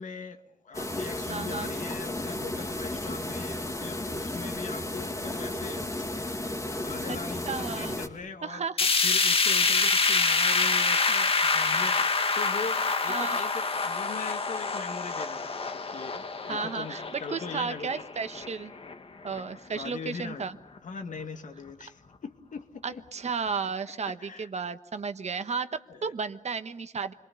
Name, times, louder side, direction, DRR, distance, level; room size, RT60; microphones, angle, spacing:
voice 1, 0.0-5.9 6.8-18.0 19.4-20.5 20.8-23.0 24.1-24.5 25.9-26.1, left 5 dB, 75° left, 2.1 m, -41 dB
sound 1, 0.7-8.1, left 1 dB, 25° left, 2.7 m, -34 dB
voice 2, 1.3-1.7 7.1-7.2 7.4-8.0 8.4-8.8 9.1-9.3 13.1-13.4 16.5-18.7 19.2-20.6 22.8-27.1, right 5 dB, 60° right, 1.3 m, -33 dB
sound 2, 8.8-18.9 19.3-19.4 19.8-19.9 20.8-20.9, left 4 dB, 45° left, 1.6 m, -26 dB
29.5 x 23.0 x 7.0 m
wide cardioid pair, 115°, 13 cm